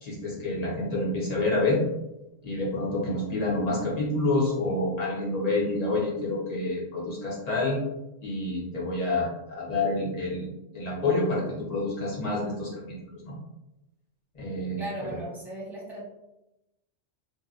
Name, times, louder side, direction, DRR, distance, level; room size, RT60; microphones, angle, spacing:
voice 1, 0.0-1.8 2.4-7.8 8.2-10.4 10.7-13.0 13.2-13.3 14.3-14.8 15.1-15.2, left 2 dB, 35° left, -5 dB, 0.8 m, -28 dB
voice 2, 14.8-16.0, right 1 dB, 5° right, -6 dB, 0.4 m, -37 dB
2.7 x 2.3 x 2.4 m, 0.94 s
omnidirectional pair, 1.3 m